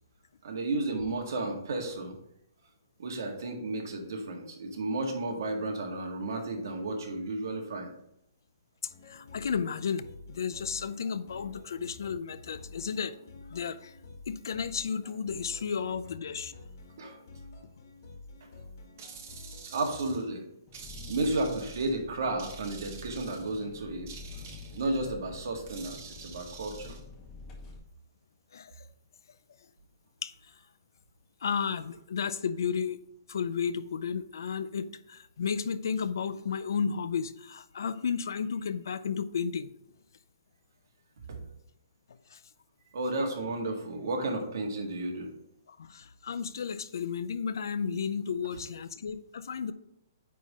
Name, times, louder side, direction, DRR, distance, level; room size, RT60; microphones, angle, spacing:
voice 1, 0.4-2.1 3.0-7.9 17.0-17.2 18.4-18.5 19.7-20.4 21.1-24.2 24.7-27.0 41.3-41.4 42.9-45.3, right 2 dB, 65° right, 2 dB, 1.8 m, -33 dB
voice 2, 8.8-13.2 13.5-13.9 14.3-16.5 28.5-28.8 30.2-30.3 31.4-33.0 33.3-39.7 42.3-42.4 45.7-49.7, left 6 dB, 75° left, 14 dB, 0.5 m, -33 dB
sound 1, 8.9-20.2, left 3 dB, 55° left, 1.9 m, -50 dB
sound 2, 19.0-20.3 20.7-22.0 22.4-23.6 24.1-25.0 25.7-27.0, right 6 dB, 40° right, 1.2 m, -48 dB
Engine, 20.7-27.8, left 4 dB, 20° left, 1.1 m, -47 dB
9.3 x 3.8 x 4.2 m, 0.77 s
hypercardioid pair, 170°, 2 cm